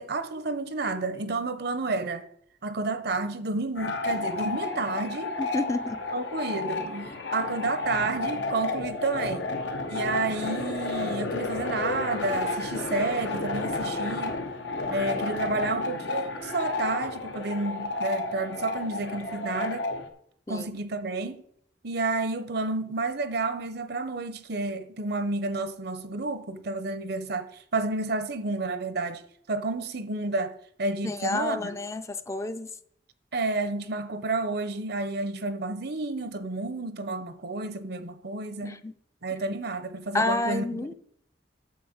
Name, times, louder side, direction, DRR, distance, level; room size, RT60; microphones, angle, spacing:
voice 1, 0.0-2.2 2.6-5.3 6.1-9.5 9.9-14.4 14.9-19.9 20.5-21.4 21.8-29.2 29.5-31.8 33.3-38.8 39.2-40.9, right 3 dB, 65° right, 0.8 m, -30 dB
sound 1, 3.8-20.1, left 3 dB, 90° left, 1.3 m, -31 dB
voice 2, 5.4-6.0 20.5-20.7 31.0-32.7 38.6-38.9 40.1-40.9, left 2 dB, 15° left, 0.5 m, -30 dB
8.6 x 4.2 x 7.2 m
head